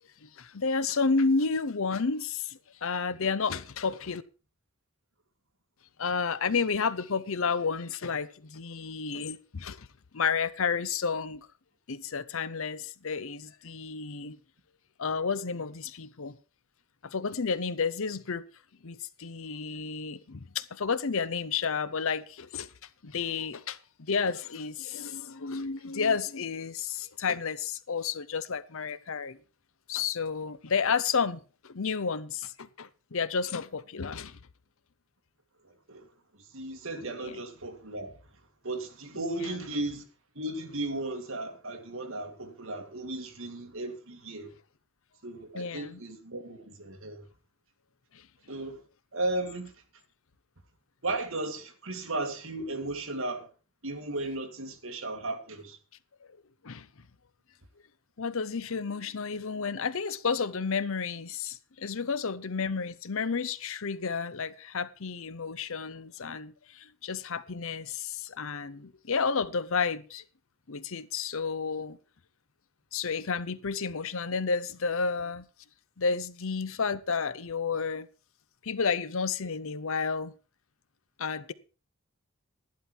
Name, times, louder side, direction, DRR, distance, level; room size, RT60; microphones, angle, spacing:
voice 1, 0.2-4.2 6.0-9.9 10.1-11.5 11.9-14.4 15.0-16.3 17.0-18.4 18.8-22.7 23.0-29.4 29.9-34.4 37.2-37.4 39.4-39.6 45.5-46.0 48.1-48.2 56.6-56.9 58.2-70.2 70.7-72.0 72.9-75.4 76.0-78.1 78.6-80.3 81.2-81.5, left 5 dB, 65° left, 0.7 m, -31 dB
voice 2, 35.6-36.1 36.5-38.1 38.6-40.0 40.4-44.5 45.2-47.3 48.5-48.8 49.1-49.7 51.0-53.5 53.8-55.8, right 2 dB, 65° right, 2.3 m, -35 dB
11.5 x 11.5 x 4.5 m
head